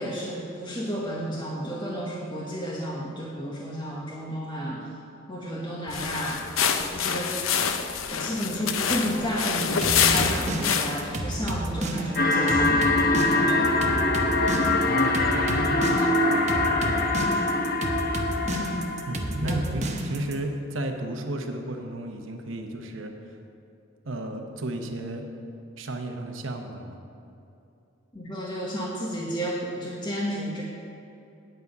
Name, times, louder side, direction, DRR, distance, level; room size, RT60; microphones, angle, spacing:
voice 1, 0.0-4.9 5.3-6.4 6.9-7.4 8.1-14.0 18.4-18.8 19.4-19.6 28.1-30.6, equal, 25° left, -5 dB, 1.1 m, -32 dB
sound 1, 5.9-11.2, left 7 dB, 85° left, 0.6 m, -26 dB
sound 2, 9.8-20.3, right 2 dB, 35° right, 0.8 m, -31 dB
sound 3, 12.2-19.4, left 2 dB, 50° left, 0.8 m, -23 dB
voice 2, 14.7-17.4 19.1-23.1 24.0-25.3 25.8-27.0, right 1 dB, 70° right, 5 dB, 0.9 m, -34 dB
9.0 x 8.4 x 5.3 m, 2.7 s
head